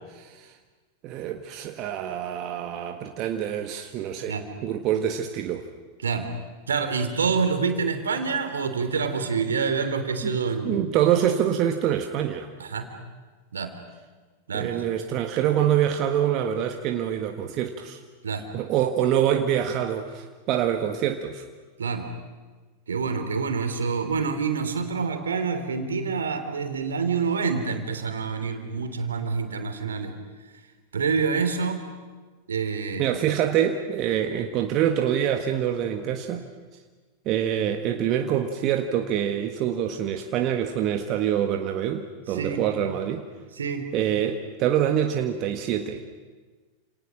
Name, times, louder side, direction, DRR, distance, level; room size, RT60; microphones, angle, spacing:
voice 1, 0.1-0.5 1.0-4.4 4.6-5.7 10.2-10.4 10.6-12.5 14.5-18.0 18.5-21.4 33.0-36.5 37.2-43.2 43.9-46.0, right 10 dB, 40° right, 5 dB, 1.6 m, -25 dB
voice 2, 6.7-10.8 12.6-12.9 13.5-13.7 14.5-14.7 18.2-18.4 21.8-22.1 22.9-30.1 30.9-31.8 32.5-33.2 42.3-42.6 43.6-43.9, right 5 dB, 70° right, 7 dB, 3.1 m, -27 dB
30.0 x 28.0 x 6.3 m, 1.4 s
figure-of-eight pair, 90°, 0 cm